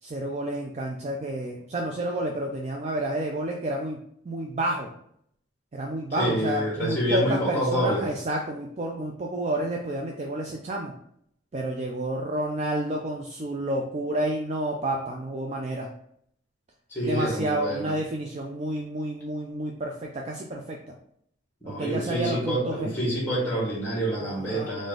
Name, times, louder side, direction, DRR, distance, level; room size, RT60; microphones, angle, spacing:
voice 1, 0.0-4.0 4.2-4.9 5.7-10.9 11.5-15.9 17.0-20.9 21.7-23.0 24.2-24.7, right 1 dB, 35° right, 0 dB, 0.3 m, -30 dB
voice 2, 6.2-8.1 16.9-17.9 21.6-24.9, right 1 dB, 10° left, -5 dB, 1.3 m, -27 dB
3.7 x 2.6 x 3.7 m, 0.70 s
head